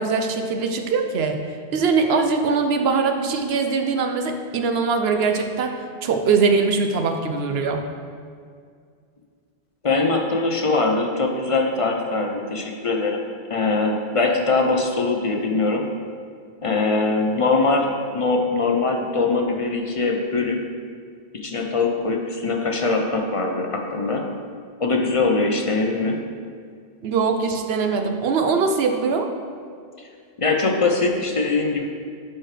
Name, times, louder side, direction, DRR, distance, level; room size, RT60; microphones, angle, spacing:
voice 1, 0.0-1.4 1.7-7.8 27.0-29.3, right 4 dB, 75° right, 5 dB, 0.9 m, -22 dB
voice 2, 9.8-13.2 13.5-15.8 16.6-20.6 21.3-24.4 24.8-26.2 30.4-31.9, left 3 dB, 40° left, 2 dB, 0.6 m, -22 dB
12.0 x 4.4 x 3.3 m, 2.2 s
omnidirectional pair, 1.1 m